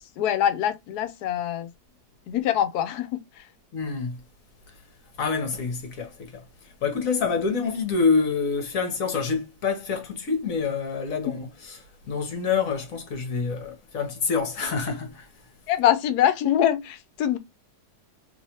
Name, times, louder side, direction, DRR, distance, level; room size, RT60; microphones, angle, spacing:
voice 1, 0.2-1.7 2.3-3.2 15.7-17.4, left 11 dB, 80° left, 1.1 m, -24 dB
voice 2, 3.7-4.2 4.7-4.8 5.2-15.3, left 5 dB, 60° left, 1.3 m, -27 dB
3.1 x 3.0 x 2.8 m
omnidirectional pair, 1.7 m